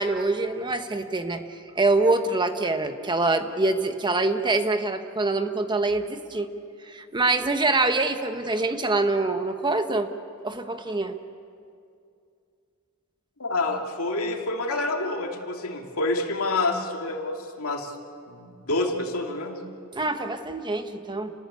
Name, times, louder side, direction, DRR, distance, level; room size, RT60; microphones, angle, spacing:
voice 1, 0.0-6.5 6.8-10.1 10.4-11.2 19.9-21.3, right 2 dB, 20° right, 7 dB, 1.2 m, -25 dB
voice 2, 13.4-17.9 18.3-19.6, left 2 dB, 70° left, 1 dB, 2.6 m, -28 dB
30.0 x 19.0 x 8.4 m, 2.4 s
head